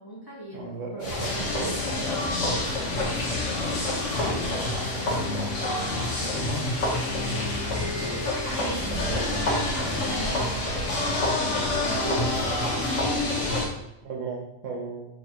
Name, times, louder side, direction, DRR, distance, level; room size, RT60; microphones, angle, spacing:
voice 1, 0.0-3.1 4.0-4.6 5.0-5.2 6.2-6.9 7.7-13.7, equal, 20° left, -6 dB, 1.2 m, -39 dB
voice 2, 0.5-1.3 1.6-1.7 2.0-2.1 3.7-4.0 4.9-5.0 5.3-5.4 11.9-12.5 14.0-15.1, right 4 dB, 80° right, 1 dB, 1.2 m, -35 dB
sound 1, 1.0-13.7, left 2 dB, 85° left, 1.4 m, -27 dB
5.6 x 3.2 x 2.8 m, 0.90 s
omnidirectional pair, 1.3 m